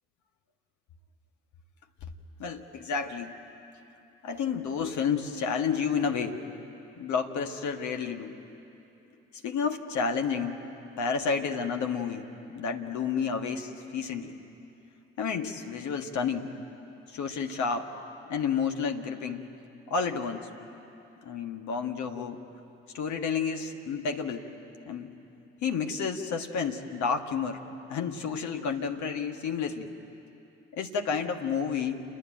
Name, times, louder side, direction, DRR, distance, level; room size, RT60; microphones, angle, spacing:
voice 1, 2.4-3.3 4.2-6.4 7.0-8.4 9.3-10.6 11.0-12.3 12.5-14.3 15.2-16.5 17.1-17.9 18.3-19.5 19.9-20.5 21.2-22.4 22.9-24.5 24.9-25.1 25.6-27.6 27.9-30.0 30.7-32.0, left 6 dB, 55° left, 5 dB, 1.6 m, -30 dB
29.5 x 10.0 x 9.2 m, 2.9 s
figure-of-eight pair, 45°, 34 cm